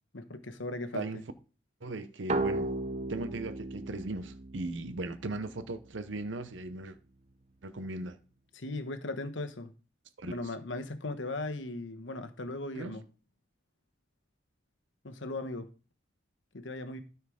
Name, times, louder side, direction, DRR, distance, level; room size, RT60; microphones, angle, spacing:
voice 1, 0.1-1.2 8.5-9.7 10.2-13.0 15.0-15.7 16.5-17.0, left 2 dB, 75° left, 1.1 m, -38 dB
voice 2, 1.8-2.7 3.1-7.0 7.6-8.2 10.2-10.3 12.7-12.9, right 2 dB, 75° right, 0.7 m, -38 dB
sound 1, 2.3-5.8, right 2 dB, 35° right, 0.7 m, -35 dB
13.0 x 4.6 x 5.0 m
head